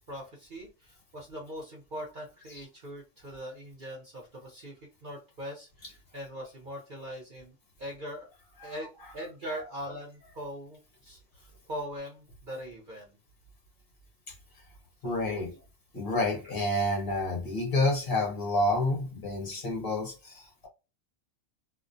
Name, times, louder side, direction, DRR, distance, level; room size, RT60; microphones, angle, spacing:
voice 1, 0.1-4.7 5.0-8.3 8.6-13.2 15.0-15.6 16.4-16.6, equal, 45° right, 0.8 m, -41 dB
voice 2, 15.0-15.5 15.9-20.7, left 2 dB, 50° left, 1.0 m, -29 dB
2.5 x 2.0 x 2.5 m
omnidirectional pair, 1.4 m